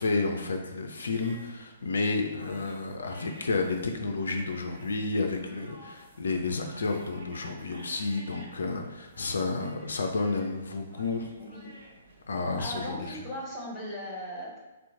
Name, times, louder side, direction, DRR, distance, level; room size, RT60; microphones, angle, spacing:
voice 1, 0.0-11.3 12.3-13.0, left 3 dB, 60° left, 4 dB, 0.3 m, -31 dB
sound 1, 1.1-12.8, right 1 dB, 50° right, 0.7 m, -53 dB
voice 2, 11.4-11.7 12.6-14.6, equal, 15° left, -4 dB, 0.8 m, -38 dB
2.9 x 2.0 x 3.5 m, 1.1 s
figure-of-eight pair, 120°, 0 cm